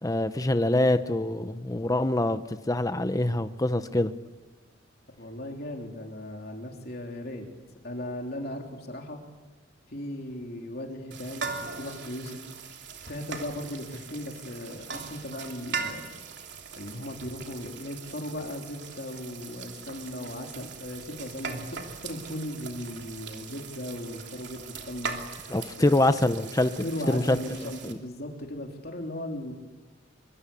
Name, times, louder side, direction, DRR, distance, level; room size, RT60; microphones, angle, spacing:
voice 1, 0.0-4.1 25.5-27.4 27.6-27.7, left 1 dB, 20° left, 10 dB, 0.9 m, -25 dB
voice 2, 5.2-7.4 7.8-9.2 9.9-12.4 13.1-16.1 16.8-25.9 26.8-29.5, left 1 dB, 55° left, 1 dB, 3.3 m, -37 dB
sound 1, 11.1-27.9, right 5 dB, 60° right, 3.2 m, -40 dB
25.0 x 24.0 x 8.5 m, 1.2 s
head